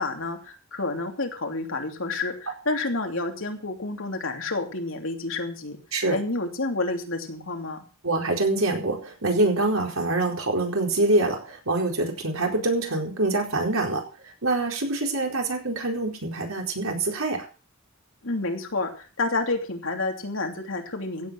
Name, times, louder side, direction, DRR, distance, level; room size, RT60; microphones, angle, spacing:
voice 1, 0.0-5.8 6.1-7.9 18.2-21.3, left 2 dB, 70° left, 4 dB, 2.9 m, -29 dB
voice 2, 8.0-14.0 14.4-17.5, right 2 dB, 80° right, 2 dB, 4.4 m, -25 dB
16.0 x 8.4 x 6.4 m, 0.37 s
head